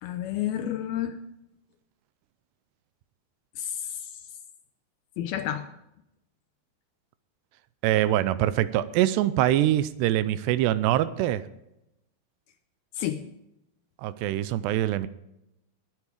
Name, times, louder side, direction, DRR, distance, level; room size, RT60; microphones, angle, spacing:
voice 1, 0.0-1.2 3.6-4.1 5.2-5.7 13.0-13.2, left 11 dB, 80° left, 9 dB, 2.3 m, -30 dB
voice 2, 7.8-11.4 14.0-15.1, right 13 dB, 80° right, 16 dB, 2.7 m, -24 dB
20.0 x 8.3 x 5.0 m, 0.85 s
omnidirectional pair, 4.9 m